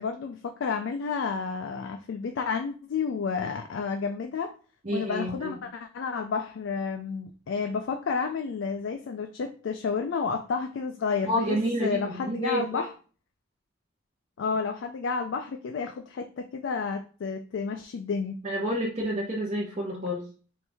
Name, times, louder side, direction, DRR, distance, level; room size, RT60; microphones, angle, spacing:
voice 1, 0.0-4.6 4.9-12.9 14.4-18.4, left 5 dB, 70° left, 6 dB, 0.3 m, -31 dB
voice 2, 4.8-5.6 11.3-12.8 18.4-20.2, equal, 35° right, -3 dB, 0.7 m, -29 dB
4.4 x 2.6 x 3.4 m, 0.39 s
head